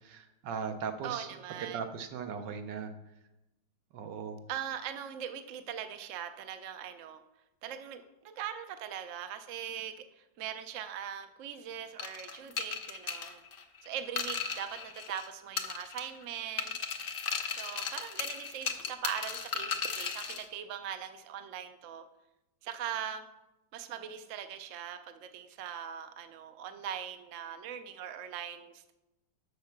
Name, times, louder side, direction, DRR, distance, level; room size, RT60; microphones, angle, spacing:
voice 1, 0.0-1.3 1.7-2.9 3.9-4.4, right 6 dB, 80° right, 7 dB, 1.5 m, -38 dB
voice 2, 1.0-1.8 4.5-7.2 7.6-13.4 13.8-16.8 17.5-22.1 22.6-23.3 23.7-28.9, right 9 dB, 65° right, 9 dB, 0.8 m, -41 dB
sound 1, 12.0-15.3 15.6-16.2 16.6-20.5, left 6 dB, 65° left, 0.5 m, -36 dB
7.2 x 6.5 x 5.8 m, 0.94 s
omnidirectional pair, 1.9 m